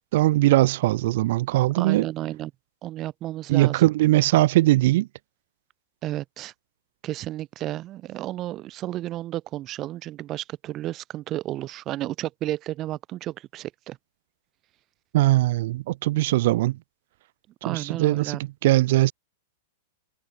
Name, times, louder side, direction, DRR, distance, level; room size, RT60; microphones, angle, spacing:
voice 1, 0.1-2.1 3.5-5.1 15.1-16.8 17.7-19.1, right 17 dB, 60° right, 1.6 m, -20 dB
voice 2, 1.8-2.5 2.8-3.8 6.0-6.5 7.0-14.0 17.6-18.4, right 14 dB, 35° right, 7.2 m, -32 dB
hypercardioid pair, 125°, 0 cm